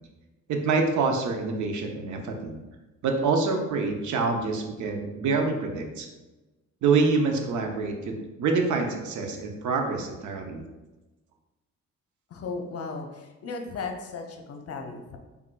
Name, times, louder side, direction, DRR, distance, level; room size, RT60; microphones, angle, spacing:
voice 1, 0.5-2.6 3.0-6.1 6.8-10.6, right 4 dB, 75° right, 3 dB, 0.8 m, -26 dB
voice 2, 12.3-15.2, left 4 dB, 50° left, 3 dB, 0.8 m, -36 dB
5.9 x 3.6 x 2.3 m, 1.1 s
cardioid pair, 90°, 30 cm